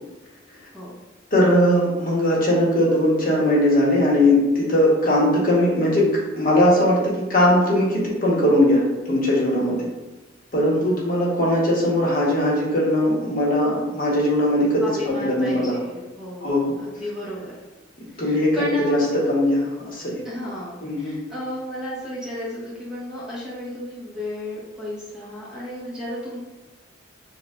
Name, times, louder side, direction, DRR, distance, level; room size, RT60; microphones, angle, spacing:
voice 1, 1.3-9.9 10.5-15.8 16.4-16.8 18.2-20.2 20.8-21.2, left 1 dB, 45° left, -4 dB, 1.1 m, -20 dB
voice 2, 14.8-17.5 18.1-19.1 20.2-26.4, left 1 dB, 5° right, -8 dB, 0.9 m, -34 dB
6.4 x 2.3 x 2.4 m, 1.1 s
head